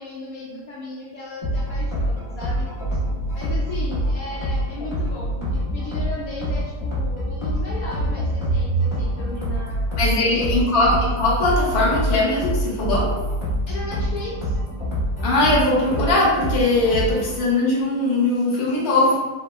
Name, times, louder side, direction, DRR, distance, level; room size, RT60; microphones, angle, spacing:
voice 1, 0.0-2.7 3.3-10.6 13.7-14.6, left 2 dB, 75° left, -6 dB, 1.1 m, -36 dB
sound 1, 1.4-17.4, right 1 dB, 20° left, 1.0 m, -25 dB
voice 2, 10.0-13.1 15.2-19.2, left 2 dB, 50° left, -5 dB, 1.1 m, -20 dB
3.4 x 2.1 x 3.4 m, 1.2 s
omnidirectional pair, 1.6 m